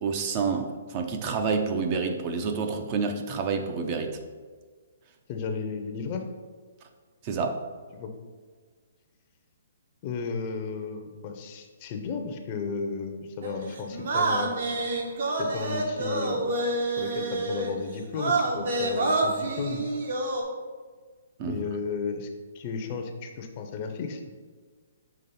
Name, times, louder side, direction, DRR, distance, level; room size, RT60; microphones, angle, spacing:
voice 1, 0.0-4.2 7.2-7.6 21.4-21.6, right 5 dB, 30° right, 6 dB, 0.5 m, -28 dB
voice 2, 5.3-6.2 7.9-8.1 10.0-14.5 15.4-16.5 17.0-19.8 21.4-22.3 22.5-24.3, left 5 dB, 30° left, 5 dB, 0.6 m, -34 dB
sound 1, 13.4-17.7 18.1-20.4, right 2 dB, 60° right, 1.0 m, -28 dB
5.8 x 3.0 x 5.5 m, 1.5 s
hypercardioid pair, 160°, 0 cm